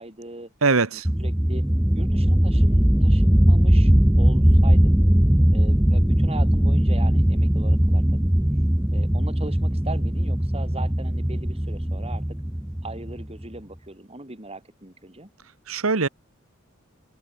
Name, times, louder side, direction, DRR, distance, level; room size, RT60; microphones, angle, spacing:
voice 1, 0.0-0.5 0.9-1.7 1.9-3.9 4.2-5.0 5.5-8.3 8.9-12.3 12.8-15.3, right 2 dB, 30° right, 4.4 m, -39 dB
voice 2, 0.6-1.1 15.7-16.1, right 4 dB, 85° right, 1.4 m, -21 dB
sound 1, 1.0-13.4, equal, 5° right, 0.6 m, -19 dB
open air
head